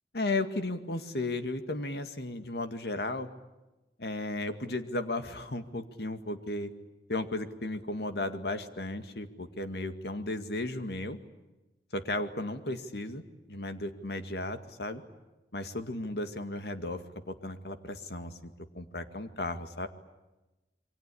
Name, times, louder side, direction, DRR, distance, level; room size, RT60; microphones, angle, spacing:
voice 1, 0.1-3.3 4.0-6.7 7.1-11.2 11.9-15.0 15.5-19.9, left 2 dB, 70° left, 8 dB, 2.1 m, -35 dB
28.0 x 24.0 x 8.6 m, 1.1 s
head